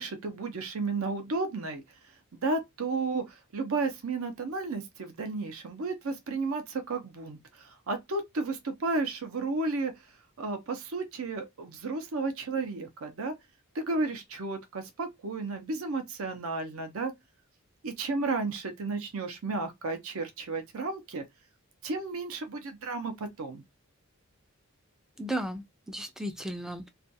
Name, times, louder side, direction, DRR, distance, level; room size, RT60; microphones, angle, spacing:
voice 1, 0.0-1.8 2.4-9.9 10.4-13.3 13.7-17.1 17.8-21.2 21.8-23.6, right 3 dB, 70° right, 0.6 m, -33 dB
voice 2, 25.2-26.9, right 1 dB, ahead, 0.3 m, -35 dB
2.4 x 2.2 x 2.6 m
head